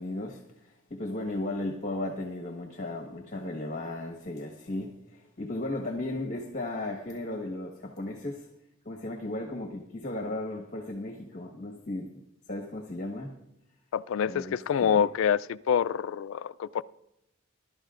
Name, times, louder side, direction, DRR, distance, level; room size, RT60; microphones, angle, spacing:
voice 1, 0.0-8.5 8.8-12.1 12.5-13.3 14.3-15.1, left 2 dB, 40° left, 1.4 m, -35 dB
voice 2, 13.9-16.8, left 8 dB, 75° left, 0.3 m, -26 dB
21.0 x 12.0 x 2.5 m
head